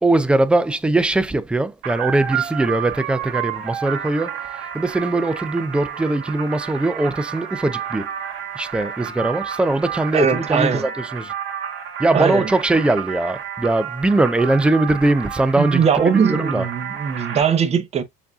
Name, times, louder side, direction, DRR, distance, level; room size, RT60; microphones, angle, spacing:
voice 1, 0.0-4.3 4.7-8.1 8.6-11.3 12.0-15.8 16.3-16.6, right 2 dB, 5° right, 0.4 m, -20 dB
sound 1, 1.8-17.4, right 9 dB, 65° right, 2.0 m, -30 dB
voice 2, 10.1-10.9 12.1-12.5 15.6-18.0, right 7 dB, 30° right, 0.9 m, -20 dB
7.0 x 2.7 x 2.4 m
cardioid pair, 125°, 21 cm